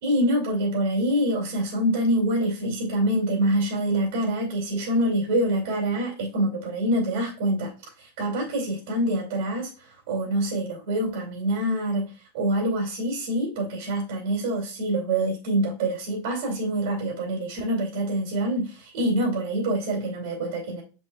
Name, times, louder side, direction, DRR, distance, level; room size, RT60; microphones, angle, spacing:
voice 1, 0.0-7.7 8.0-20.8, right 1 dB, 60° right, 2.5 m, -25 dB
7.0 x 6.1 x 2.3 m
supercardioid pair, 165°, 0 cm